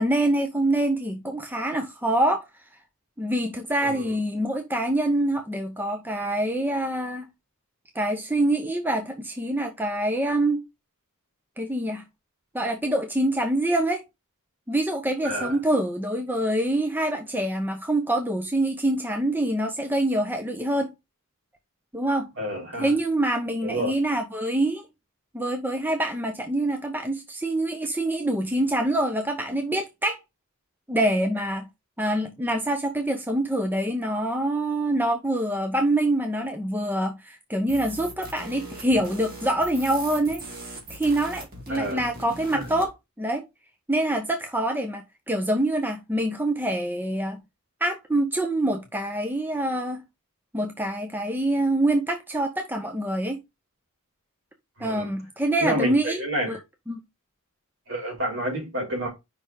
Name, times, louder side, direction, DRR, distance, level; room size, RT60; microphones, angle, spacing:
voice 1, 0.0-2.4 3.2-7.3 7.9-10.6 11.6-12.0 12.5-14.0 14.7-20.9 21.9-22.3 22.7-24.9 25.3-30.2 30.9-31.6 32.0-40.4 40.9-43.4 43.9-47.4 47.8-50.0 50.5-53.4 54.8-56.2 56.5-56.6 56.9-57.0, right 1 dB, 10° right, 0.7 m, -25 dB
voice 2, 22.4-22.9 23.6-23.9 41.7-42.0 42.5-42.6 54.8-55.1 55.6-56.6 57.9-59.1, right 1 dB, 60° right, 3.9 m, -29 dB
sound 1, 37.7-42.9, right 2 dB, 40° right, 2.3 m, -40 dB
5.4 x 4.2 x 4.6 m
head